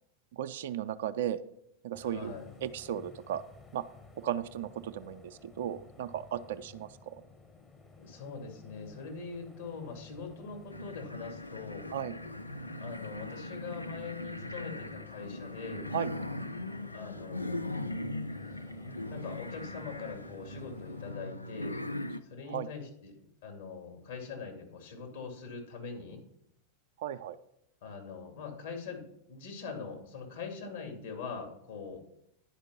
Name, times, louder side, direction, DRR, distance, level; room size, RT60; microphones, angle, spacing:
voice 1, 0.3-1.4 1.8-2.3 2.6-3.4 3.7-3.8 4.2-7.2 11.9-12.1 15.9-16.1 22.5-22.7 27.0-27.4, right 10 dB, 55° right, 11 dB, 0.5 m, -35 dB
sound 1, 1.9-21.1, left 4 dB, 15° left, 1.0 m, -53 dB
voice 2, 2.0-2.5 8.0-11.9 12.8-15.9 16.9-18.1 19.1-21.8 22.3-23.1 23.4-26.2 27.8-32.0, left 5 dB, 60° left, 1 dB, 2.5 m, -43 dB
sound 2, 10.7-22.2, left 1 dB, 85° left, 0.5 m, -40 dB
10.5 x 5.1 x 5.7 m, 0.77 s
figure-of-eight pair, 90°, 0 cm